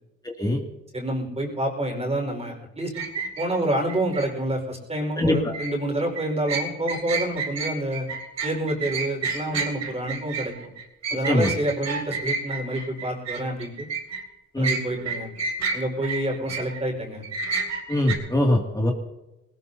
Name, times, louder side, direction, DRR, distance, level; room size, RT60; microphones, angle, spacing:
voice 1, 0.9-3.0 3.4-8.1 8.4-10.6 11.1-13.9 14.6-15.3 15.7-17.2, right 1 dB, 20° right, 0 dB, 4.8 m, -28 dB
sound 1, 2.9-4.3 5.3-5.7 6.2-14.2 14.6-16.8 17.2-18.2, right 4 dB, 60° right, 3.9 m, -30 dB
voice 2, 5.2-5.5 11.3-11.5 14.5-14.7 17.9-18.9, left 1 dB, 10° left, 0 dB, 2.3 m, -22 dB
20.0 x 19.0 x 2.8 m, 0.96 s
cardioid pair, 90°, 30 cm